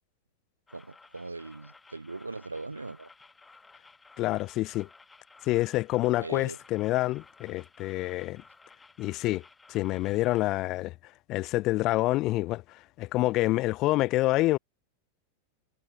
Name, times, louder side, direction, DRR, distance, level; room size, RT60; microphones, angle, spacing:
sound 1, 0.7-10.5, left 4 dB, 10° left, 4.9 m, -56 dB
voice 1, 0.7-3.1 6.2-6.6, right 3 dB, 80° right, 1.3 m, -40 dB
voice 2, 4.2-4.9 5.4-8.4 9.0-9.4 9.7-10.9 11.3-14.6, left 18 dB, 40° left, 0.3 m, -27 dB
figure-of-eight pair, 90°, 0 cm